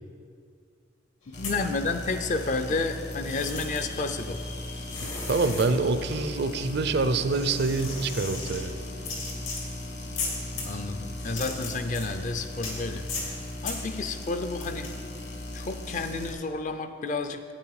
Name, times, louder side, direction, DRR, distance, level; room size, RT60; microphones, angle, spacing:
sound 1, 1.3-2.4 2.7-16.3, left 3 dB, 75° left, 2.1 m, -39 dB
sound 2, 1.3-16.3, left 1 dB, 55° left, 1.4 m, -38 dB
voice 1, 1.4-4.4 5.0-5.1 10.6-14.9 15.5-17.4, left 3 dB, 40° left, 9 dB, 0.5 m, -31 dB
voice 2, 5.3-8.7, right 3 dB, 55° right, 11 dB, 0.5 m, -26 dB
8.7 x 8.6 x 4.8 m, 2.2 s
head